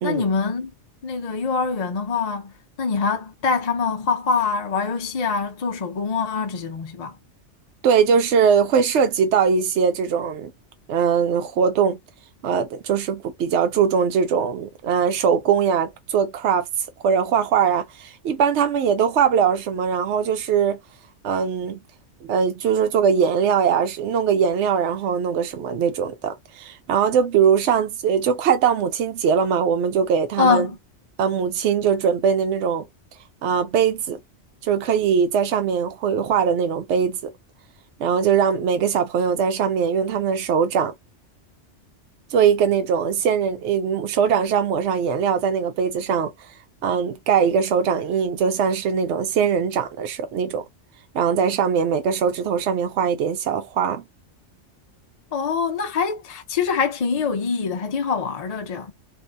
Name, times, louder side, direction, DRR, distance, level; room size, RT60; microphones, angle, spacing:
voice 1, 0.0-0.7 1.0-7.2 30.4-30.8 55.3-58.9, left 5 dB, 50° left, 0.5 m, -24 dB
voice 2, 7.8-10.5 10.9-12.0 12.4-20.8 21.2-21.8 22.3-30.7 31.2-32.8 33.4-34.2 34.6-37.3 38.0-40.9 42.3-46.5 46.8-50.6 51.1-54.0, right 7 dB, 75° right, 0.8 m, -21 dB
2.6 x 2.5 x 3.2 m
omnidirectional pair, 1.2 m